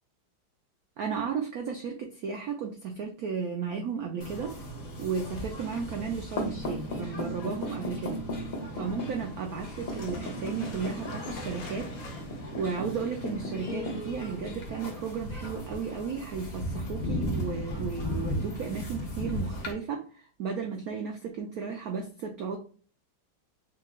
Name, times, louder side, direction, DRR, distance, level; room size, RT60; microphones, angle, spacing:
voice 1, 1.0-4.6 5.0-8.2 8.7-11.9 12.5-22.6, right 6 dB, 90° right, 2 dB, 0.8 m, -34 dB
sound 1, 4.2-19.7, equal, 75° left, 0.4 m, -36 dB
sound 2, 9.7-13.9, left 3 dB, 60° left, 0.9 m, -45 dB
5.5 x 2.0 x 3.7 m, 0.40 s
omnidirectional pair, 2.4 m